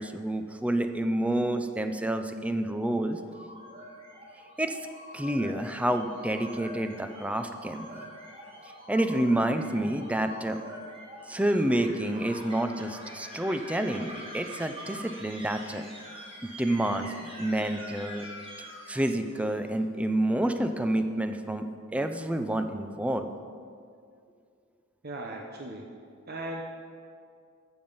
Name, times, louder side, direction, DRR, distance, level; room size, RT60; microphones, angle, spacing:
voice 1, 0.0-3.2 4.6-4.8 5.1-8.1 8.9-10.6 11.3-15.8 16.4-18.3 18.9-23.3, right 1 dB, 5° right, 7 dB, 0.5 m, -29 dB
sound 1, 3.1-19.6, equal, 25° right, 2.2 m, -45 dB
voice 2, 25.0-25.9 26.3-26.6, right 1 dB, 50° right, 1 dB, 0.8 m, -37 dB
12.5 x 7.1 x 5.5 m, 2.3 s
head